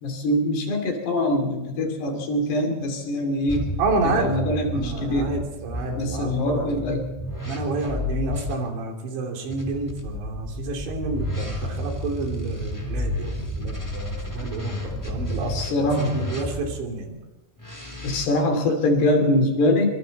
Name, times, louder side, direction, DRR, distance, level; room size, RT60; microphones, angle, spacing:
voice 1, 0.0-3.7 4.0-5.3 6.0-7.0 15.5-16.2 18.0-20.0, left 1 dB, 60° left, 4 dB, 4.6 m, -23 dB
sound 1, 3.5-8.6 9.5-16.9 17.6-18.3, left 1 dB, 5° left, 1.9 m, -31 dB
voice 2, 3.8-4.4 4.7-6.7 7.4-17.2, right 3 dB, 65° right, 2 dB, 5.1 m, -29 dB
25.5 x 25.0 x 4.2 m, 1.0 s
omnidirectional pair, 5.7 m